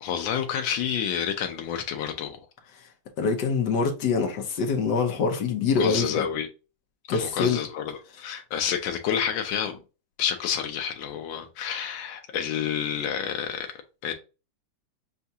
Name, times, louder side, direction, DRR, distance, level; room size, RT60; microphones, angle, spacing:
voice 1, 0.0-2.4 5.8-6.5 7.1-9.8 10.2-14.1, left 8 dB, 85° left, 1.4 m, -29 dB
voice 2, 3.2-6.3 7.1-7.6, left 5 dB, 70° left, 1.3 m, -25 dB
6.6 x 2.3 x 2.7 m
omnidirectional pair, 2.1 m